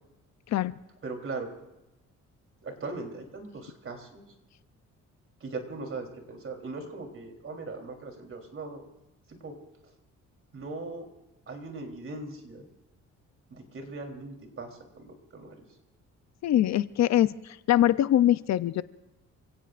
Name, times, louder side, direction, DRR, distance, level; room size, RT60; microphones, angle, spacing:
voice 1, 1.0-1.5 2.6-4.2 5.4-8.8 9.3-9.5 9.8-9.9 10.5-11.1 11.5-12.7 13.5-15.6, right 3 dB, 45° right, 3 dB, 3.5 m, -39 dB
voice 2, 16.4-18.8, left 12 dB, 65° left, 15 dB, 0.6 m, -23 dB
28.5 x 17.0 x 2.5 m, 0.95 s
cardioid pair, 90°, 30 cm